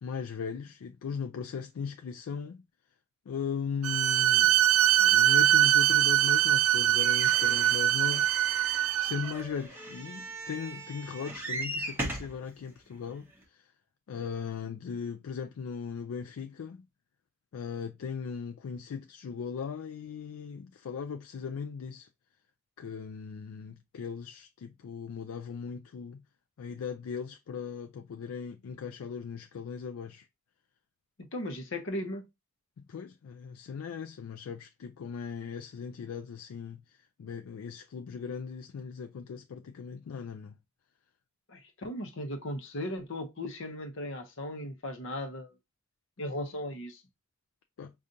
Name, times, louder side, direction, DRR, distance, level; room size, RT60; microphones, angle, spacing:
voice 1, 0.0-2.6 3.3-8.4 9.0-13.7 14.1-16.9 17.5-22.1 22.8-26.2 26.6-30.3 32.9-40.6 47.8-47.9, left 6 dB, 80° left, 0.4 m, -38 dB
Bowed string instrument, 3.8-9.3, right 12 dB, 70° right, 0.3 m, -23 dB
sound 1, 7.0-12.4 13.1-13.2 13.4-13.5, right 1 dB, 10° right, 0.7 m, -39 dB
voice 2, 31.3-32.3 41.5-45.5 46.2-47.0, left 1 dB, 60° left, 0.8 m, -37 dB
5.0 x 2.4 x 2.6 m
head